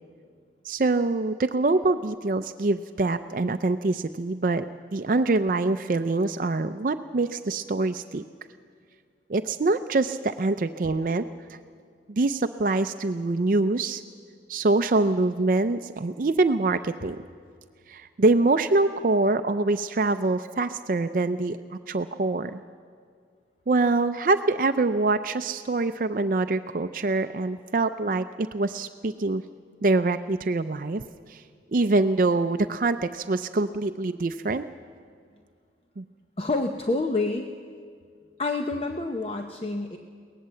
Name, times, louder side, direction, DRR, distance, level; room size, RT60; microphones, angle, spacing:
voice 1, 0.6-4.7 4.9-8.2 9.3-11.6 12.1-14.0 14.5-17.2 17.9-22.6 23.7-29.4 29.8-31.0 31.3-31.4 31.7-34.6 36.0-36.1, right 3 dB, 50° right, 9 dB, 0.5 m, -24 dB
voice 2, 36.4-37.5 38.4-40.0, left 3 dB, 35° left, 4 dB, 0.8 m, -27 dB
22.5 x 18.0 x 7.7 m, 2.1 s
head